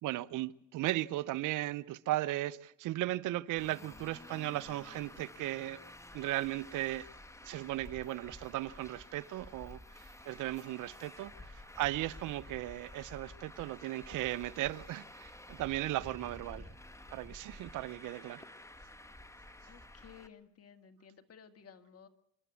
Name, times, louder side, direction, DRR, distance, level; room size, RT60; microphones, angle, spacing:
voice 1, 0.0-5.8 6.1-7.1 7.4-16.7 17.1-18.5, right 16 dB, 90° right, 0.7 m, -36 dB
Traffic noise roadway noise, 3.5-20.3, left 1 dB, 10° left, 1.5 m, -51 dB
voice 2, 19.7-22.1, left 7 dB, 50° left, 2.0 m, -56 dB
28.0 x 12.0 x 8.4 m
cardioid pair, 90°, 30 cm